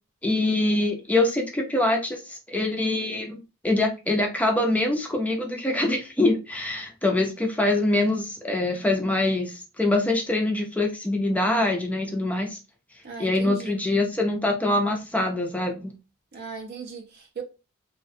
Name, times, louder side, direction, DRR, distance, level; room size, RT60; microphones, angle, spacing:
voice 1, 0.2-3.4 3.6-12.6 13.2-15.9, left 2 dB, 5° left, 0.4 m, -24 dB
voice 2, 13.0-13.9 16.3-17.4, right 5 dB, 50° right, 0.5 m, -38 dB
2.4 x 2.1 x 2.6 m
head